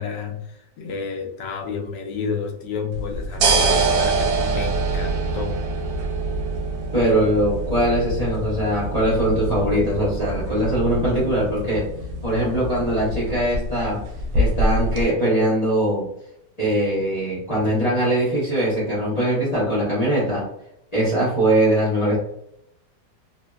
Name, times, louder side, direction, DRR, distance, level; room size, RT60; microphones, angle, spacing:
voice 1, 0.0-5.6, left 5 dB, 85° left, 3 dB, 1.2 m, -31 dB
sound 1, 2.9-15.0, right 2 dB, 80° right, 1.2 m, -25 dB
voice 2, 6.9-11.9 12.2-14.0 14.3-16.1 16.6-20.4 20.9-22.2, right 1 dB, 30° left, -8 dB, 0.8 m, -21 dB
3.2 x 2.1 x 2.3 m, 0.76 s
omnidirectional pair, 1.9 m